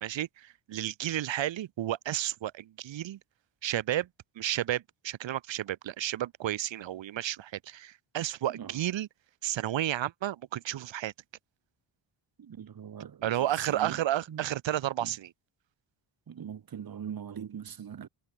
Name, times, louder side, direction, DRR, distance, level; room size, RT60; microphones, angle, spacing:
voice 1, 0.0-3.2 3.6-4.1 4.3-9.1 9.4-11.1 13.2-15.3, right 12 dB, 75° right, 1.6 m, -32 dB
voice 2, 12.4-14.0 14.3-14.5 15.0-15.1 16.3-18.1, right 8 dB, 50° right, 4.5 m, -41 dB
wide cardioid pair, 165°, 46 cm